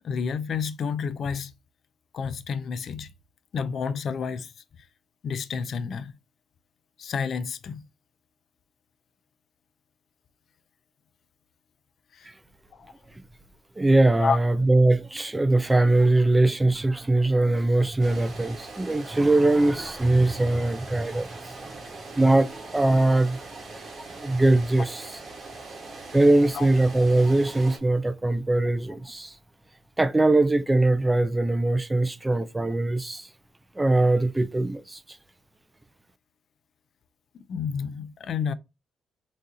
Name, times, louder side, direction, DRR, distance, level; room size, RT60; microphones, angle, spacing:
voice 1, 0.0-1.5 2.1-3.1 3.5-4.5 5.2-6.1 7.0-7.8 12.1-12.3 12.7-12.9 14.2-14.4 26.5-26.7 37.3-38.5, left 6 dB, 60° left, 0.4 m, -30 dB
voice 2, 13.8-21.9 22.2-23.5 24.1-25.1 26.1-29.4 30.0-33.3 33.8-35.0, right 2 dB, 15° right, 0.3 m, -21 dB
sound 1, 18.0-27.8, right 3 dB, 50° right, 1.2 m, -42 dB
4.0 x 2.4 x 2.6 m
cardioid pair, 90°, 0 cm